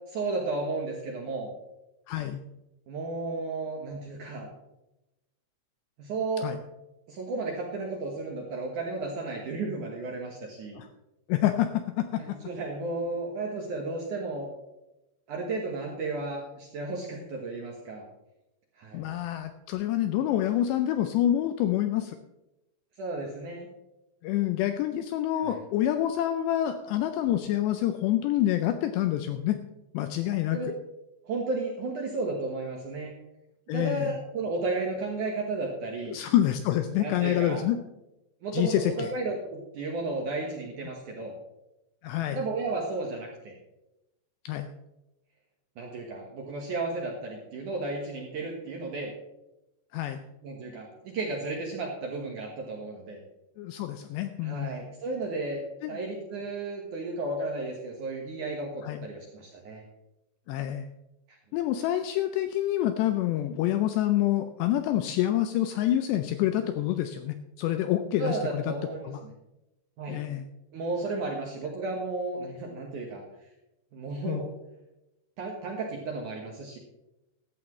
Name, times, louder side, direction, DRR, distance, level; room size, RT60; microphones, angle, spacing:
voice 1, 0.1-1.5 2.9-4.5 6.0-6.5 7.1-10.8 12.2-14.5 15.3-18.1 18.8-19.1 23.0-23.7 25.4-25.6 30.5-30.7 31.2-33.1 33.7-36.2 37.0-37.7 38.4-41.3 42.4-43.5 45.8-49.1 50.4-53.2 54.4-55.6 55.9-59.8 61.3-61.4 68.2-69.3 70.0-70.2 70.7-73.2 73.9-74.5 75.4-76.8, right 3 dB, 65° right, 0 dB, 2.1 m, -33 dB
voice 2, 2.1-2.4 6.4-6.6 10.8-10.9 11.3-12.4 18.9-22.2 24.2-29.6 29.9-30.6 33.7-34.1 36.1-37.8 38.5-39.1 42.0-42.4 44.5-44.7 49.9-50.2 53.6-54.8 55.8-55.9 58.8-59.0 60.5-60.9 61.5-68.7 69.0-69.2 70.1-70.5 74.3-74.5, left 12 dB, 85° left, 8 dB, 2.5 m, -27 dB
15.5 x 12.0 x 3.2 m, 0.94 s
omnidirectional pair, 5.5 m